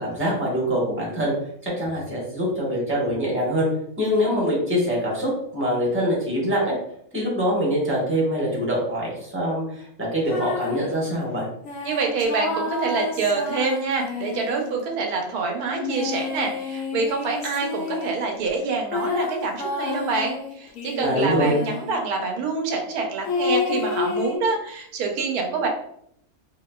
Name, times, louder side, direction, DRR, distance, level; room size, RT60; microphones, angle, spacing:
voice 1, 0.0-1.3 1.6-3.7 4.0-6.7 7.1-11.5 21.0-21.6, equal, 10° right, -5 dB, 1.1 m, -24 dB
sound 1, 10.3-10.9 11.6-14.9 15.7-18.3 18.9-22.0 23.3-24.4, left 4 dB, 70° left, 1.0 m, -29 dB
voice 2, 11.8-25.7, right 4 dB, 90° right, 2 dB, 1.2 m, -26 dB
3.4 x 2.8 x 2.2 m, 0.70 s
omnidirectional pair, 1.6 m